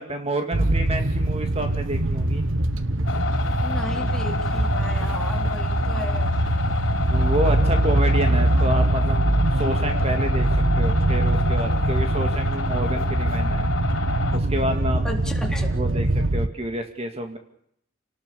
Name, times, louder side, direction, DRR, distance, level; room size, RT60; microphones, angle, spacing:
voice 1, 0.0-2.4 7.1-9.2 9.6-13.7 14.3-15.0 15.7-17.4, right 1 dB, 30° right, 5 dB, 2.3 m, -29 dB
sound 1, 0.5-16.5, right 1 dB, 75° right, 1.4 m, -22 dB
sound 2, 3.0-14.4, left 4 dB, 85° left, 3.4 m, -30 dB
voice 2, 3.6-6.4 15.0-15.8, left 1 dB, 5° left, 1 dB, 3.8 m, -35 dB
29.5 x 19.0 x 7.1 m, 0.72 s
head